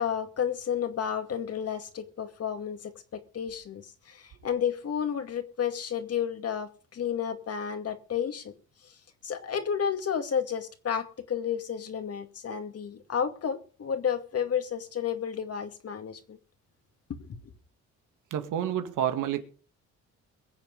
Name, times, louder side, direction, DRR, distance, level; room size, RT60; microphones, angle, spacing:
voice 1, 0.0-8.5 8.8-8.9 9.2-16.4 17.1-17.3, left 8 dB, 50° left, 2.3 m, -31 dB
voice 2, 18.3-19.4, right 10 dB, 85° right, 2.0 m, -29 dB
22.5 x 7.6 x 5.3 m
cardioid pair, 90°, 30 cm